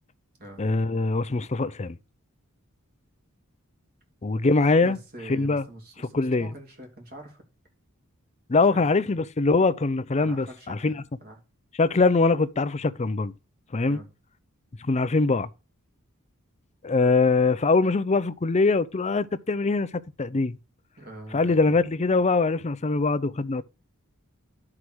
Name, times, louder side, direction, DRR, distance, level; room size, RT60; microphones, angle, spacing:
voice 1, 0.6-2.0 4.2-5.0 5.3-5.6 6.1-6.5 8.5-11.0 11.8-13.3 13.7-14.0 14.8-15.5 16.8-20.6 21.3-23.6, left 3 dB, 30° left, 0.5 m, -23 dB
voice 2, 4.8-7.4 8.7-8.8 10.2-11.4 13.9-14.1 21.0-21.8, right 1 dB, 45° right, 3.1 m, -44 dB
11.0 x 4.9 x 6.1 m
head